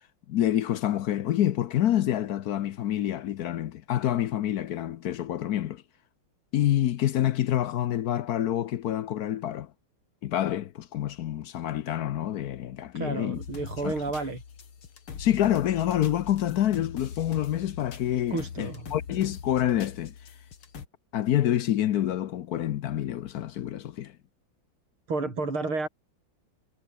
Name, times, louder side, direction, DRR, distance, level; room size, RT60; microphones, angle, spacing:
voice 1, 0.3-5.8 6.5-9.7 10.2-13.4 13.8-13.9 15.2-20.1 21.1-24.1, left 12 dB, 65° left, 1.0 m, -27 dB
voice 2, 12.9-14.4 18.3-18.9 25.1-25.9, right 3 dB, 90° right, 6.5 m, -31 dB
sound 1, 13.3-20.9, left 7 dB, 90° left, 3.1 m, -42 dB
omnidirectional pair, 2.3 m